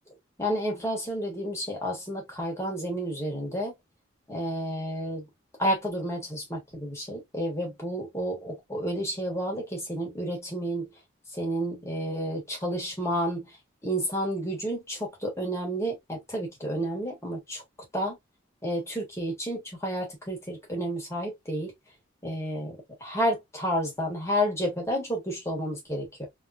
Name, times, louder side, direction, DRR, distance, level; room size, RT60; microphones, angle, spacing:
voice 1, 0.4-3.7 4.3-5.3 5.6-10.9 11.3-13.5 13.8-17.6 17.9-18.2 18.6-21.7 22.2-26.3, equal, 15° left, 1.5 m, -31 dB
3.4 x 3.0 x 2.5 m
head